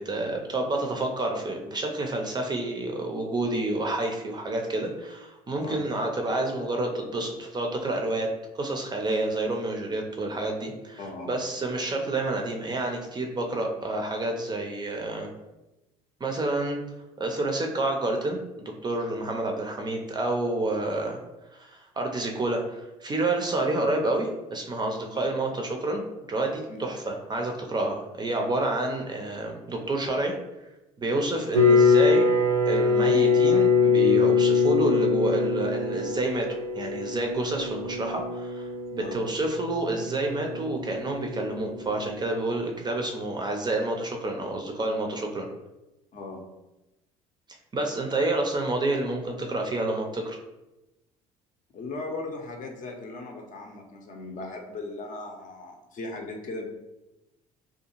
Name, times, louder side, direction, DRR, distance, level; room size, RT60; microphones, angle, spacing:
voice 1, 0.0-8.3 8.5-15.3 16.2-16.8 17.2-21.2 21.5-26.0 26.3-30.3 31.0-32.3 32.7-36.5 36.8-45.5 47.7-50.4, right 2 dB, 25° right, 2 dB, 0.4 m, -29 dB
voice 2, 11.0-11.3 25.1-25.3 26.7-26.8 31.4-31.5 39.0-39.2 46.1-46.4 51.7-56.7, left 2 dB, 45° left, 2 dB, 0.6 m, -38 dB
sound 1, 31.5-42.6, left 4 dB, 85° right, 0.5 m, -24 dB
2.5 x 2.2 x 2.9 m, 0.99 s
hypercardioid pair, 55°, 19 cm